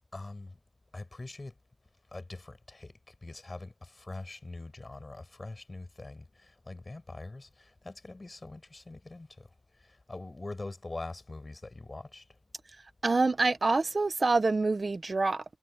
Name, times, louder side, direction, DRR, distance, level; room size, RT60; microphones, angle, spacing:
voice 1, 0.1-0.6 0.9-1.5 2.1-12.4, left 2 dB, 55° left, 7.5 m, -43 dB
voice 2, 13.0-15.4, right 3 dB, 70° right, 1.3 m, -26 dB
wide cardioid pair, 50°, 0 cm